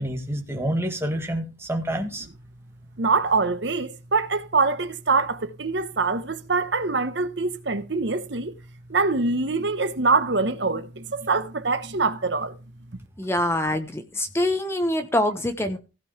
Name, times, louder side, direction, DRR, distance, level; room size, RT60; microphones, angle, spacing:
voice 1, 0.0-2.3, right 1 dB, 15° right, 2.0 m, -28 dB
voice 2, 3.0-8.5 8.9-12.5, right 4 dB, 60° right, 1.0 m, -24 dB
voice 3, 13.2-15.8, left 1 dB, 15° left, 1.1 m, -25 dB
15.5 x 5.4 x 5.9 m
head